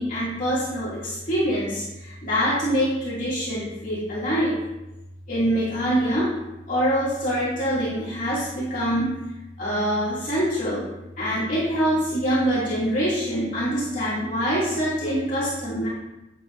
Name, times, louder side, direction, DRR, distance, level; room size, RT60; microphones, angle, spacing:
voice 1, 0.0-4.6 5.3-6.3 6.7-9.1 9.6-10.8 11.2-15.9, equal, 45° left, -8 dB, 2.5 m, -24 dB
9.9 x 7.5 x 2.6 m, 0.95 s
head